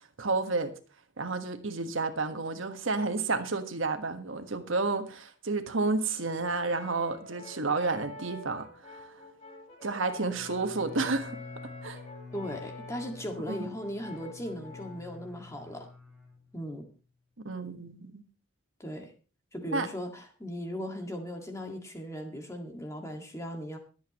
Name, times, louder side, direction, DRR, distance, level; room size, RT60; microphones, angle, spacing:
voice 1, 0.2-0.7 1.2-9.1 9.8-11.4 11.8-12.0 13.5-13.7 17.4-18.2 19.7-19.9, right 3 dB, 70° right, 7 dB, 1.5 m, -31 dB
Brass instrument, 6.5-15.1, left 2 dB, 30° left, 4.5 m, -48 dB
Bowed string instrument, 10.3-16.9, left 3 dB, ahead, 3.7 m, -48 dB
voice 2, 12.3-15.9 16.5-16.9 18.8-19.1 19.5-23.8, equal, 15° left, 3 dB, 2.0 m, -38 dB
24.0 x 8.3 x 3.1 m, 0.35 s
head